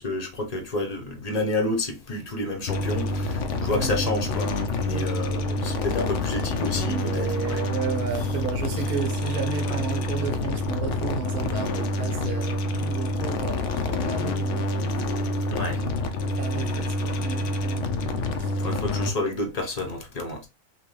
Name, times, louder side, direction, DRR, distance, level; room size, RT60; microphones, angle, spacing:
voice 1, 0.0-7.6 8.1-8.2 9.6-9.8 15.5-15.9 18.6-20.5, left 2 dB, 30° left, 0.8 m, -30 dB
sound 1, 2.7-19.1, left 2 dB, 65° left, 0.9 m, -27 dB
voice 2, 3.7-4.1 4.9-5.1 6.7-14.7 15.0-15.1 16.4-17.9 18.4-18.6, right 6 dB, 75° right, 1.3 m, -33 dB
5.8 x 2.3 x 3.2 m
omnidirectional pair, 1.6 m